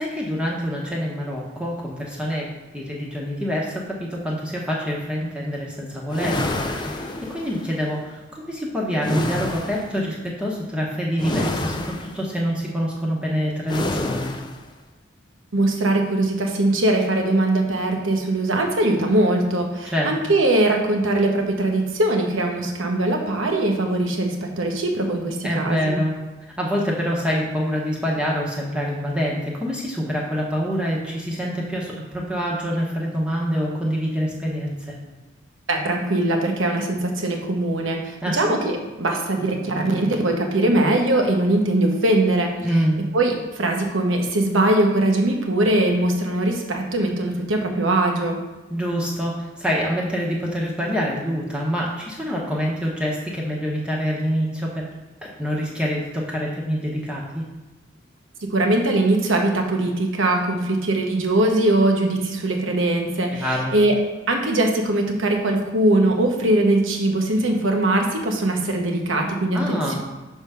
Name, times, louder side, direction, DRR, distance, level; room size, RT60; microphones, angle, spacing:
voice 1, 0.0-2.5 2.7-14.3 19.8-20.1 25.4-26.2 26.6-35.0 38.2-38.6 42.6-43.0 48.7-54.9 55.2-57.5 63.3-63.7 69.5-70.0, equal, 5° right, -4 dB, 0.9 m, -26 dB
sound 1, 6.1-7.7 9.0-10.0 11.2-12.3 13.7-14.6, left 1 dB, 20° left, 0.4 m, -27 dB
voice 2, 15.5-26.0 35.7-42.5 43.1-48.4 58.5-63.5 63.7-64.0 64.3-70.0, right 1 dB, 85° right, 2 dB, 1.0 m, -21 dB
6.3 x 3.6 x 5.6 m, 1.2 s
head